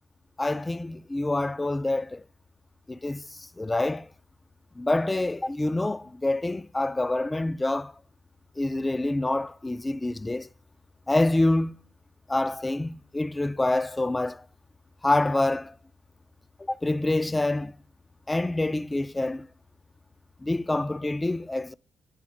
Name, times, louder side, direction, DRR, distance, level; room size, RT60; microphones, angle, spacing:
voice 1, 0.4-2.2 2.9-3.2 3.6-4.1 4.8-7.9 8.6-10.5 11.1-11.7 12.3-14.4 15.0-15.7 16.7-17.7 18.3-19.5 20.4-21.7, left 2 dB, 20° left, 0.3 m, -26 dB
8.5 x 3.5 x 6.2 m
supercardioid pair, 60°, 0 cm